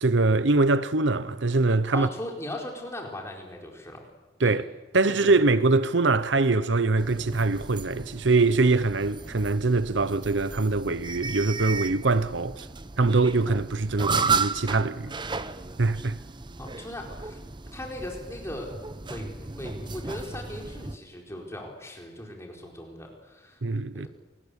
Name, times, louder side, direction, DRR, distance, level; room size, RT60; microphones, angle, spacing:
voice 1, 0.0-2.1 4.4-4.6 4.9-12.6 13.0-15.1 15.8-16.2 23.6-24.1, right 3 dB, 70° right, 0.9 m, -23 dB
voice 2, 1.9-4.0 4.4-4.6 5.1-5.5 16.6-17.4 17.7-18.7 19.0-23.6 23.9-24.1, left 1 dB, 15° left, 4.6 m, -38 dB
sound 1, 7.0-21.0, right 4 dB, 25° right, 0.8 m, -34 dB
27.5 x 20.0 x 8.2 m
head